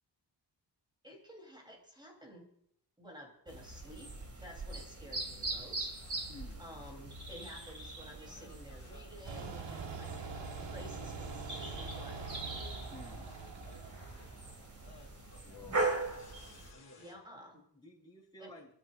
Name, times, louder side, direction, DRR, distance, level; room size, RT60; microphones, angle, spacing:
voice 1, 1.0-2.5 3.0-4.2 4.4-6.0 6.6-12.4 17.0-17.6 18.4-18.5, equal, 10° right, 2 dB, 3.5 m, -52 dB
sound 1, 3.5-16.7, right 2 dB, 40° right, 2.5 m, -41 dB
sound 2, 6.0-17.2, left 3 dB, 45° left, 4.3 m, -61 dB
voice 2, 6.3-6.6 12.9-13.3 15.4-16.1 17.5-18.7, left 3 dB, 10° left, -8 dB, 4.7 m, -53 dB
sound 3, 9.2-15.0, right 4 dB, 75° right, 1.6 m, -44 dB
25.5 x 13.0 x 2.6 m, 0.68 s
wide cardioid pair, 175°, 44 cm